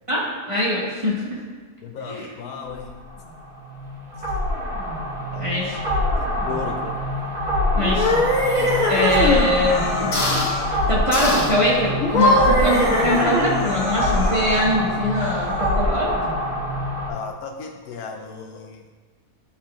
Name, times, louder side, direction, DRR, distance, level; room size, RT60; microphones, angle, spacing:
voice 1, 0.1-1.4 2.0-2.3 5.4-5.8 7.8-8.1 8.5-10.1 10.7-16.1, left 1 dB, 20° right, -7 dB, 1.4 m, -23 dB
voice 2, 1.8-3.0 5.3-6.1 6.4-6.9 17.1-18.8, left 5 dB, 75° left, 3 dB, 1.0 m, -35 dB
sound 1, 2.6-17.1, left 1 dB, 75° right, 2.6 m, -25 dB
sound 2, 7.8-9.5 10.1-10.5 11.1-11.6 12.0-13.7, left 1 dB, 55° left, 1.9 m, -20 dB
Human voice, 8.7-10.7 11.1-11.8 12.2-12.3 12.6-14.7 15.1-15.7, left 4 dB, 40° left, 0.4 m, -33 dB
12.0 x 4.4 x 2.4 m, 1.4 s
omnidirectional pair, 1.7 m